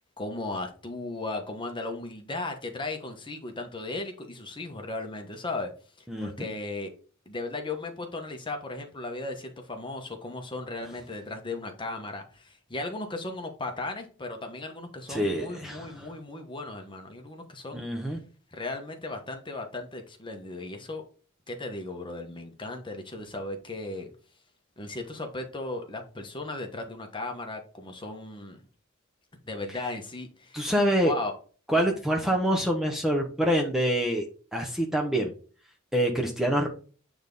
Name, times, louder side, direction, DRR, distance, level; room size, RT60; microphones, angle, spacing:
voice 1, 0.2-5.7 6.0-6.9 7.3-17.9 18.5-21.0 21.5-24.1 24.8-28.6 29.4-30.6 31.0-31.3, left 2 dB, 25° left, 1.2 m, -36 dB
voice 2, 6.1-6.5 15.1-15.9 17.7-18.2 30.5-31.1 31.7-34.3 34.5-35.3 35.9-36.7, equal, ahead, 0.9 m, -26 dB
8.8 x 3.5 x 3.9 m
head